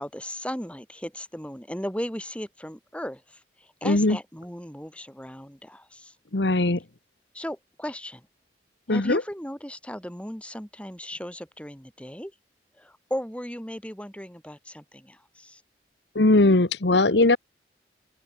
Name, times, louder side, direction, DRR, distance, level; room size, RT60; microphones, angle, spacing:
voice 1, 0.0-6.2 7.3-8.3 8.9-12.3 12.8-15.6, equal, 5° left, 3.5 m, -36 dB
voice 2, 3.8-4.2 6.3-6.8 8.9-9.2 16.1-17.4, left 2 dB, 75° left, 1.3 m, -19 dB
open air
head